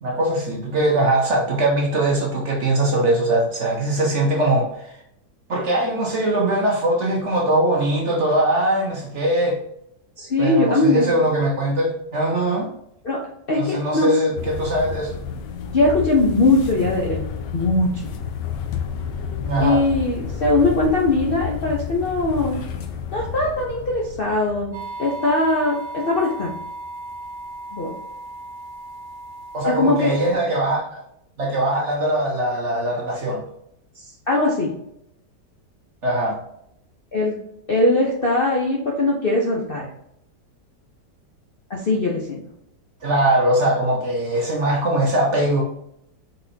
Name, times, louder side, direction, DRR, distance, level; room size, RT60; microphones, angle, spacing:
voice 1, 0.0-5.0 5.5-9.6 10.4-12.7 13.6-15.2 19.4-19.8 29.5-31.0 31.4-33.4 36.0-36.4 43.0-45.6, right 1 dB, 50° right, -1 dB, 1.0 m, -21 dB
voice 2, 10.2-11.2 13.0-13.2 13.5-14.1 15.7-17.2 17.5-18.1 19.6-22.6 23.1-24.7 25.0-26.5 27.7-27.9 29.6-30.2 34.0-34.7 37.1-37.4 37.7-39.9 41.7-42.4, left 2 dB, 50° left, -2 dB, 0.6 m, -20 dB
sound 1, 14.4-24.9, left 7 dB, 85° left, 1.3 m, -31 dB
sound 2, 24.7-30.3, right 2 dB, 70° right, 0.5 m, -36 dB
4.3 x 4.1 x 2.7 m, 0.74 s
omnidirectional pair, 1.9 m